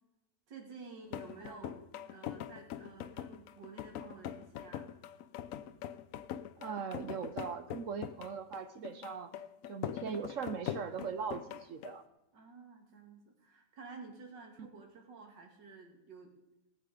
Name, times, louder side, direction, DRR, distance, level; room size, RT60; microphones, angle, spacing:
voice 1, 0.5-4.9 12.3-16.3, right 4 dB, 80° right, 3 dB, 2.6 m, -52 dB
sound 1, 1.1-12.0, left 10 dB, 70° left, 0.8 m, -43 dB
voice 2, 6.6-9.4 9.7-12.0, right 6 dB, 60° right, 10 dB, 0.9 m, -40 dB
18.0 x 7.9 x 4.9 m, 0.97 s
omnidirectional pair, 1.9 m